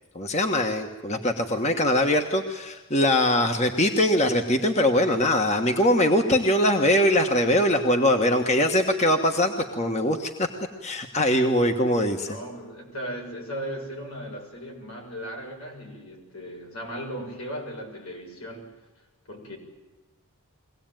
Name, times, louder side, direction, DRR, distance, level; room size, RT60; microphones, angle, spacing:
voice 1, 0.1-10.5 10.8-12.4, left 1 dB, 30° left, 5 dB, 1.4 m, -22 dB
voice 2, 12.2-18.7 19.3-19.6, equal, 85° left, 1 dB, 6.8 m, -37 dB
23.5 x 18.0 x 9.1 m, 1.1 s
head